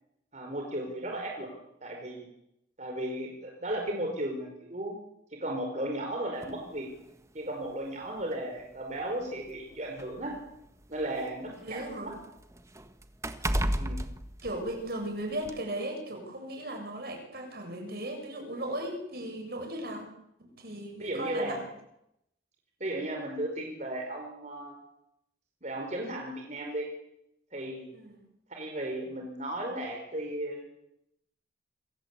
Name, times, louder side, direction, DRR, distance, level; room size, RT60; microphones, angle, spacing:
voice 1, 0.3-1.5 1.8-2.3 2.8-5.0 5.4-6.9 7.3-10.4 10.9-12.2 13.8-14.0 21.0-21.6 22.8-24.7 25.6-26.9 27.5-27.9 28.5-30.6, right 1 dB, 40° right, 1 dB, 5.2 m, -35 dB
sound 1, 6.4-6.6 7.6-7.7 8.2-8.3 9.3-11.2 11.6-15.1 15.4-15.6, right 1 dB, 15° right, 1.6 m, -34 dB
voice 2, 11.6-12.2 14.4-20.1 20.4-21.6 27.9-28.2, right 1 dB, 60° right, 4 dB, 7.1 m, -37 dB
27.5 x 24.0 x 8.4 m, 0.83 s
head